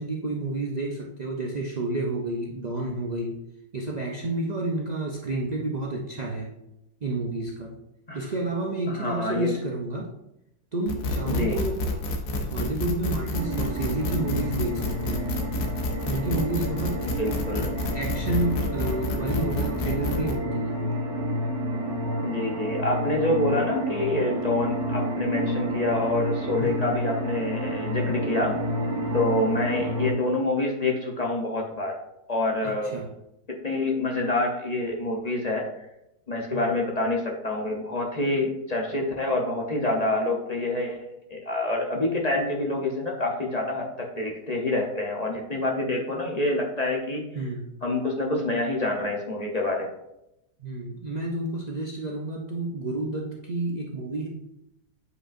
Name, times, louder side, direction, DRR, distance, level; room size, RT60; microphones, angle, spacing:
voice 1, 0.0-3.4 3.7-6.5 7.0-7.8 8.1-10.1 10.7-11.9 12.4-15.4 16.1-17.1 17.9-20.9 26.6-26.8 32.6-33.1 36.5-36.7 47.3-47.6 50.6-54.3, right 2 dB, 80° right, -1 dB, 0.3 m, -30 dB
voice 2, 8.9-9.5 11.2-11.6 17.0-17.8 22.2-28.6 29.1-32.0 32.3-32.9 33.6-35.6 36.3-41.0 41.3-47.2 47.8-49.9, left 2 dB, 35° left, -1 dB, 0.7 m, -27 dB
sound 1, 10.9-20.4, left 2 dB, 65° left, 1.2 m, -30 dB
sound 2, 13.3-30.1, equal, 45° right, 1.3 m, -30 dB
8.1 x 5.0 x 2.5 m, 0.85 s
omnidirectional pair, 1.6 m